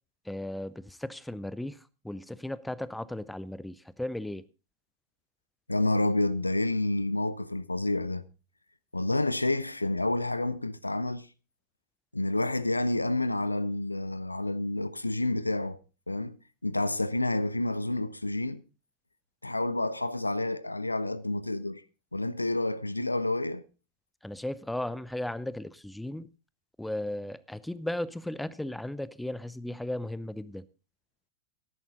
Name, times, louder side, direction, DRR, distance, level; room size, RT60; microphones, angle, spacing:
voice 1, 0.3-1.8 2.0-4.4 24.2-26.3 26.8-30.6, left 1 dB, 5° left, 0.5 m, -36 dB
voice 2, 5.7-8.2 8.9-11.3 12.1-15.8 16.1-18.6 19.4-21.8 22.1-23.6, left 2 dB, 85° left, 0.5 m, -29 dB
13.5 x 10.5 x 4.0 m
figure-of-eight pair, 90°, 0 cm